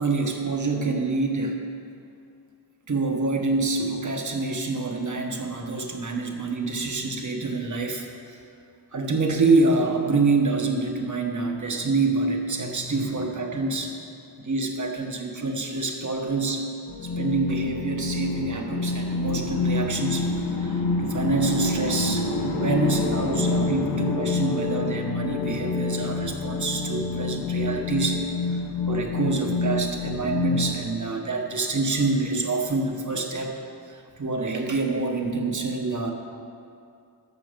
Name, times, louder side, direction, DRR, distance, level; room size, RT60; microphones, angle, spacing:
voice 1, 0.0-1.7 2.9-8.4 8.9-13.9 14.4-16.7 17.0-33.5 33.9-36.1, right 3 dB, 45° right, 2 dB, 1.3 m, -26 dB
sound 1, 16.9-30.7, left 3 dB, 85° left, 1.4 m, -27 dB
13.5 x 6.8 x 5.2 m, 2.5 s
wide cardioid pair, 120°, 42 cm